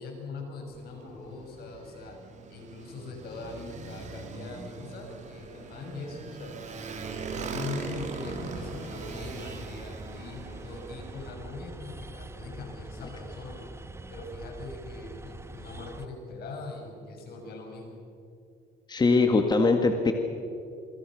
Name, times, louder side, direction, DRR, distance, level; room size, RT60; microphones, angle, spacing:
voice 1, 0.0-2.2 2.5-6.6 7.3-13.6 14.1-18.0, left 3 dB, 70° left, 2 dB, 7.0 m, -41 dB
Motorcycle, 0.7-11.4, right 5 dB, 45° right, 3.5 m, -41 dB
sound 1, 7.9-16.1, right 3 dB, 15° right, 1.1 m, -44 dB
voice 2, 18.9-20.1, left 3 dB, 25° left, 5 dB, 1.9 m, -22 dB
27.5 x 25.0 x 6.4 m, 2.6 s
cardioid pair, 110°, 17 cm